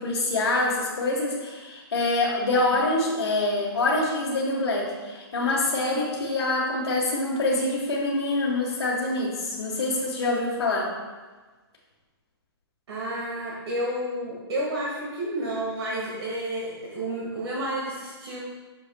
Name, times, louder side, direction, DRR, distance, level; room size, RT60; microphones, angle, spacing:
voice 1, 0.0-10.9, left 2 dB, 70° left, -6 dB, 1.5 m, -25 dB
voice 2, 12.9-18.4, right 1 dB, 75° right, -5 dB, 1.7 m, -31 dB
8.1 x 6.6 x 2.3 m, 1.3 s
hypercardioid pair, 155°, 13 cm